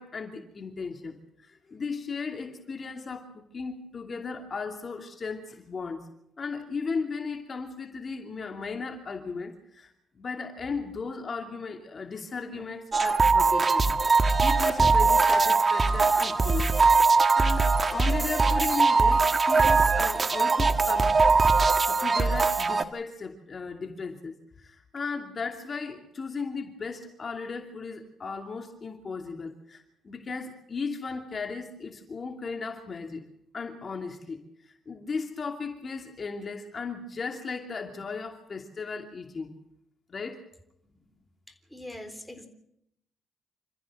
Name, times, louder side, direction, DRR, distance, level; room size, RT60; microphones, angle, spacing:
voice 1, 0.0-6.1 6.4-14.0 14.4-16.8 17.2-21.2 21.9-33.2 33.5-39.6 40.1-40.4, left 4 dB, 40° left, 4 dB, 2.7 m, -36 dB
sound 1, 12.9-22.8, right 4 dB, 30° right, 1.5 m, -21 dB
voice 2, 41.5-42.5, left 1 dB, ahead, 6 dB, 3.7 m, -43 dB
27.0 x 14.5 x 7.8 m, 0.77 s
cardioid pair, 90°, 0 cm